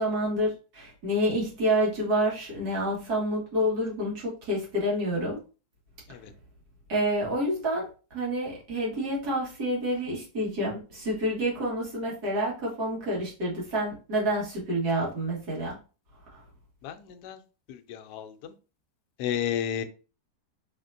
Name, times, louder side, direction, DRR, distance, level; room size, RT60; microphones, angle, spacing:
voice 1, 0.0-5.4 6.9-15.8 16.3-16.4, equal, 65° right, -4 dB, 2.2 m, -28 dB
voice 2, 16.8-17.4 17.7-18.5 19.2-19.8, left 9 dB, 75° left, 6 dB, 1.1 m, -32 dB
4.9 x 3.5 x 2.6 m, 0.34 s
omnidirectional pair, 1.8 m